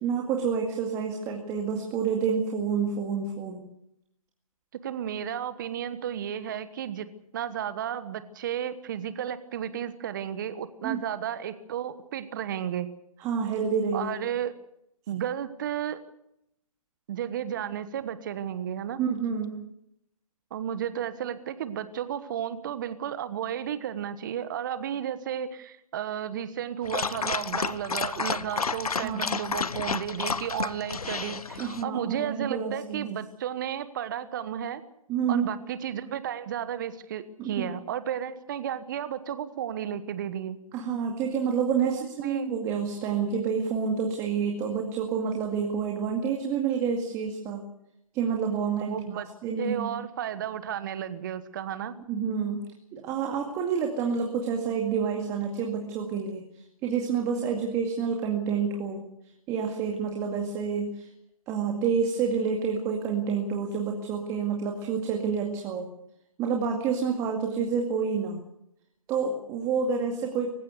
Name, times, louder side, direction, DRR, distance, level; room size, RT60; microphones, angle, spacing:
voice 1, 0.0-3.6 10.8-11.0 13.2-14.1 19.0-19.6 29.0-29.4 31.6-33.1 35.1-35.5 37.4-37.7 40.7-47.6 48.1-49.9 52.1-52.6 52.9-56.4 56.8-59.0 59.5-61.1 61.5-65.9 66.4-68.4 69.1-70.5, right 6 dB, 15° right, 2 dB, 2.1 m, -28 dB
voice 2, 4.8-7.1 7.3-12.9 13.9-14.5 15.1-16.0 17.1-19.0 20.5-34.8 35.3-40.6 41.9-42.5 48.8-49.3 49.6-52.0, right 9 dB, 30° right, 13 dB, 1.3 m, -33 dB
Dog, 26.8-31.8, left 5 dB, 75° left, 1.1 m, -31 dB
25.5 x 15.5 x 8.1 m, 0.78 s
figure-of-eight pair, 150°, 19 cm